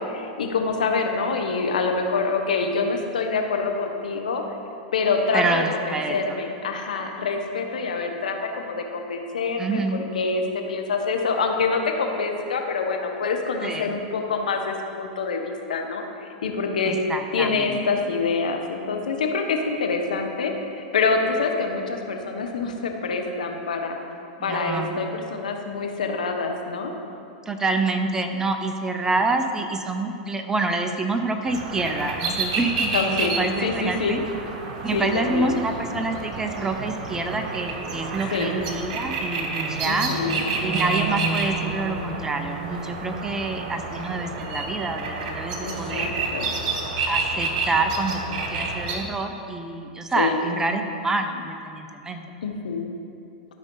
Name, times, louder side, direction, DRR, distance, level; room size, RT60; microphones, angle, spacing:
voice 1, 0.0-4.4 4.9-10.4 10.7-17.0 17.3-24.0 24.4-26.9 32.9-33.3 33.6-34.2 34.9-35.6 38.3-38.5 39.8-40.4 45.6-46.5 50.2-50.4 52.4-52.9, left 4 dB, 85° left, 3 dB, 1.0 m, -26 dB
voice 2, 5.3-6.4 9.6-10.0 13.6-13.9 16.9-18.0 24.4-25.0 27.5-34.2 34.8-40.1 40.6-46.1 47.1-52.2, right 3 dB, 15° right, 6 dB, 0.7 m, -27 dB
sound 1, 31.5-49.0, right 3 dB, 60° right, 1.3 m, -29 dB
12.5 x 5.3 x 3.8 m, 2.6 s
hypercardioid pair, 110°, 4 cm